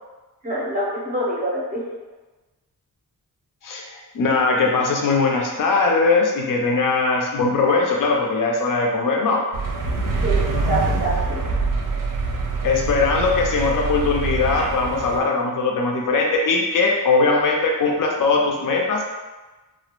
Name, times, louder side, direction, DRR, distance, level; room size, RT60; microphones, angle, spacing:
voice 1, 0.4-1.8 10.2-11.4, right 1 dB, 25° right, -6 dB, 0.5 m, -25 dB
voice 2, 3.6-9.4 12.6-19.1, left 3 dB, 65° left, 0 dB, 0.5 m, -20 dB
sound 1, 9.5-15.2, right 3 dB, 70° right, 0.5 m, -24 dB
2.2 x 2.0 x 2.9 m, 1.2 s
wide cardioid pair, 150°, 34 cm